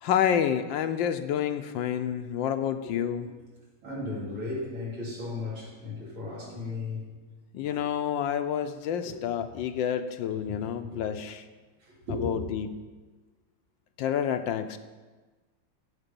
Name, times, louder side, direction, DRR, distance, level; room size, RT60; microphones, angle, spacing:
voice 1, 0.0-3.3 7.5-11.4 12.1-12.8 14.0-14.8, left 9 dB, 75° left, 9 dB, 1.2 m, -29 dB
voice 2, 3.8-7.1 7.6-7.8 9.1-9.2 10.8-11.0 11.9-12.4, left 2 dB, 85° right, -5 dB, 4.0 m, -35 dB
15.0 x 6.2 x 5.3 m, 1.3 s
omnidirectional pair, 2.2 m